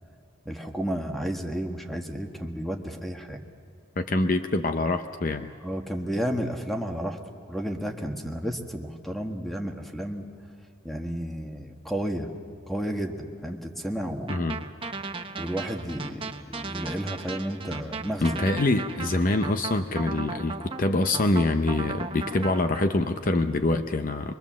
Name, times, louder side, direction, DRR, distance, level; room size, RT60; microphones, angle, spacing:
voice 1, 0.4-3.4 5.6-7.2 7.5-10.3 10.8-12.3 12.7-14.5 15.4-18.7, equal, ahead, 3 dB, 1.5 m, -32 dB
voice 2, 4.0-5.5 14.3-14.6 18.2-24.3, left 2 dB, 40° left, 8 dB, 0.7 m, -25 dB
sound 1, 14.3-22.8, right 4 dB, 25° right, 1.0 m, -36 dB
24.5 x 22.5 x 7.4 m, 2.4 s
head